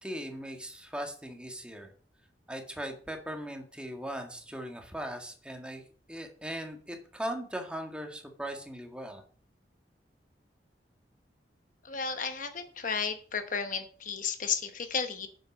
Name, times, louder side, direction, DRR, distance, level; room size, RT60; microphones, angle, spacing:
voice 1, 0.0-1.9 2.5-5.8 6.1-9.2, equal, 5° right, 3 dB, 1.9 m, -39 dB
voice 2, 11.8-15.3, left 6 dB, 50° left, 8 dB, 1.0 m, -33 dB
9.6 x 7.8 x 5.4 m, 0.43 s
head